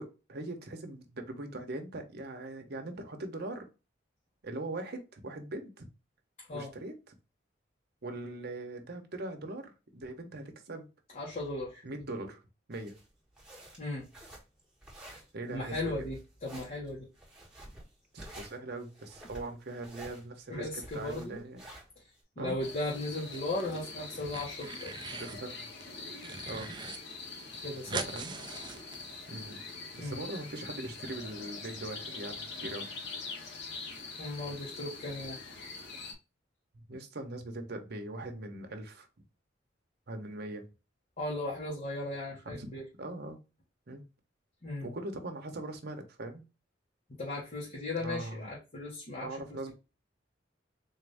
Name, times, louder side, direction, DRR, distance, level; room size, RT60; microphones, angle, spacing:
voice 1, 0.0-3.7 4.4-5.9 6.5-7.1 8.0-10.9 11.8-12.4 12.7-13.0 15.3-15.8 18.1-21.6 22.4-22.6 25.1-25.7 26.5-26.7 28.1-28.3 29.3-29.6 29.9-32.9 36.9-39.1 40.1-40.7 42.4-43.4 43.9-44.0 44.8-46.4 48.0-48.5 49.2-49.7, right 2 dB, 60° right, 0.9 m, -41 dB
voice 2, 11.1-11.8 13.8-14.1 15.5-17.1 20.5-21.4 22.4-25.0 27.6-28.1 30.0-30.2 34.2-35.4 41.2-42.8 44.6-44.9 47.2-49.3, left 2 dB, 40° left, 1.1 m, -36 dB
sound 1, 12.7-22.2, right 1 dB, 5° right, 1.4 m, -51 dB
sound 2, 22.6-36.1, left 4 dB, 65° left, 1.4 m, -44 dB
sound 3, 23.2-23.9 24.1-25.4 25.8-27.0 27.3-27.4 27.5-29.5, right 4 dB, 25° right, 0.5 m, -41 dB
4.0 x 2.6 x 3.3 m
head